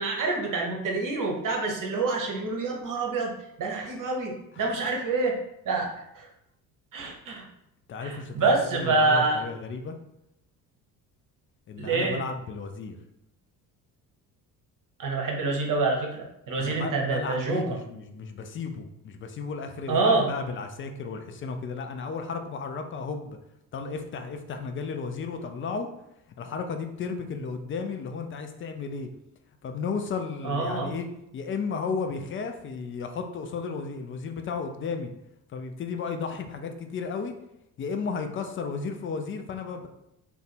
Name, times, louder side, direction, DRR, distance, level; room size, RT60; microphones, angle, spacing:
voice 1, 0.0-3.3 3.6-5.4 5.6-6.3 6.9-7.4 8.0-9.4 11.8-12.2 15.0-17.6 19.9-20.3 30.4-30.9, right 3 dB, 40° right, 1 dB, 1.0 m, -26 dB
voice 2, 7.9-10.0 11.7-13.0 16.6-23.4 23.7-25.9 26.4-29.1 29.6-31.1 31.3-35.1 35.5-37.3 37.8-39.9, left 5 dB, 25° left, 6 dB, 0.4 m, -34 dB
2.5 x 2.3 x 4.1 m, 0.82 s
hypercardioid pair, 55°, 48 cm